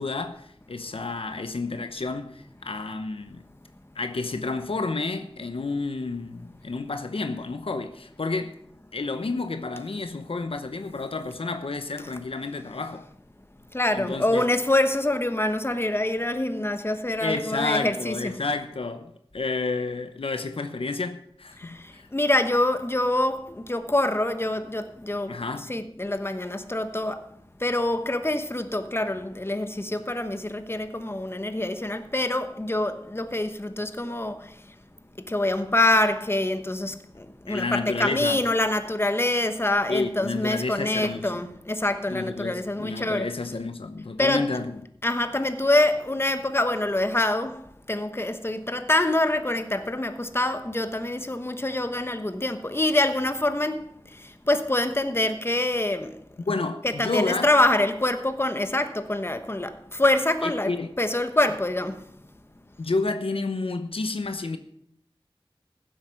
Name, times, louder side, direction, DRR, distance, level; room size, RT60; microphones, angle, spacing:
voice 1, 0.0-3.4 4.0-8.6 8.9-13.1 13.9-14.5 17.2-22.1 25.3-25.7 37.5-38.4 39.9-41.3 42.1-44.7 56.5-57.5 60.4-60.9 62.8-64.6, left 3 dB, 85° left, 0.9 m, -30 dB
voice 2, 13.7-18.4 21.6-21.8 22.1-27.2 27.6-34.5 35.3-43.3 44.2-44.6 45.0-53.8 54.2-56.2 56.8-60.7 61.0-62.0, left 1 dB, 25° left, 1.0 m, -25 dB
15.0 x 7.9 x 5.8 m
wide cardioid pair, 45°, 9 cm